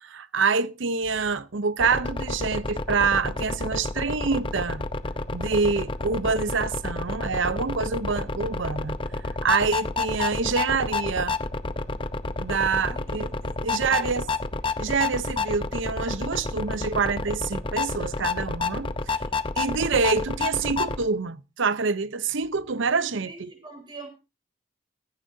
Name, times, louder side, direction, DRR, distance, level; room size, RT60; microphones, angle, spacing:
voice 1, 0.0-4.8 5.3-9.0 9.4-11.4 12.4-14.2 14.8-18.9 19.6-23.5, right 5 dB, 60° right, 0.7 m, -26 dB
sound 1, 1.8-21.0, left 3 dB, 25° left, 0.7 m, -30 dB
voice 2, 12.8-13.3 13.6-14.2 23.2-24.1, right 3 dB, 20° right, 4.3 m, -43 dB
15.5 x 15.0 x 2.7 m
head